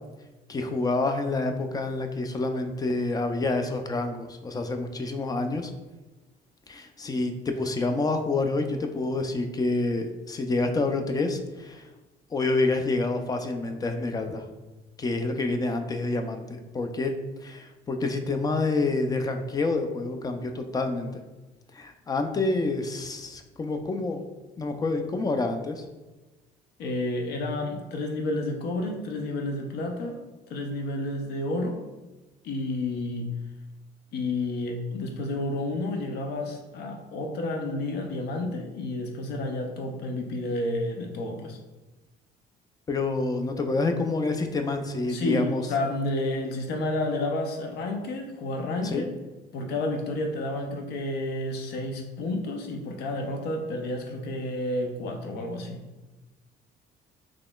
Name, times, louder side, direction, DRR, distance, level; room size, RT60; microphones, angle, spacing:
voice 1, 0.5-5.7 6.7-11.9 12.3-14.4 15.0-17.1 17.4-21.2 21.7-24.2 24.6-25.8 42.9-45.6 48.8-49.1, left 3 dB, 20° left, 6 dB, 0.4 m, -28 dB
voice 2, 26.8-30.2 30.5-31.8 32.4-33.3 34.1-41.6 45.1-49.1 49.5-55.8, left 2 dB, 75° left, 3 dB, 0.5 m, -30 dB
4.0 x 3.0 x 2.3 m, 1.2 s
cardioid pair, 110°, 17 cm